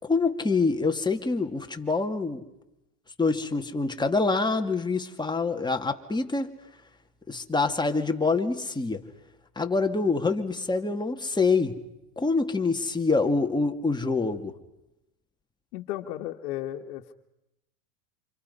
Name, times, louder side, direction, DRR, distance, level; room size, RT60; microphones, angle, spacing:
voice 1, 0.0-2.4 3.2-6.5 7.3-9.0 9.6-11.8 12.2-14.5, left 3 dB, 10° left, 4 dB, 2.2 m, -26 dB
voice 2, 15.7-17.1, left 13 dB, 70° left, 0 dB, 1.7 m, -34 dB
29.0 x 27.5 x 5.6 m, 0.90 s
hypercardioid pair, 105°, 46 cm